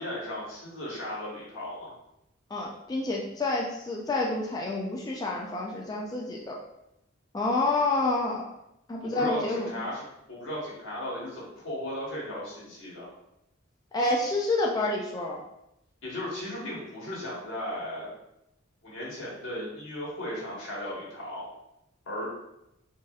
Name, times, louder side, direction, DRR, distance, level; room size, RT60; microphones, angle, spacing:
voice 1, 0.0-1.9 9.0-13.1 16.0-18.1 18.8-21.5 22.0-22.3, left 1 dB, 75° left, -6 dB, 1.4 m, -36 dB
voice 2, 2.5-6.6 7.3-8.4 8.9-9.7 13.9-15.4, left 2 dB, 20° left, -2 dB, 0.3 m, -28 dB
3.9 x 2.6 x 2.4 m, 0.84 s
head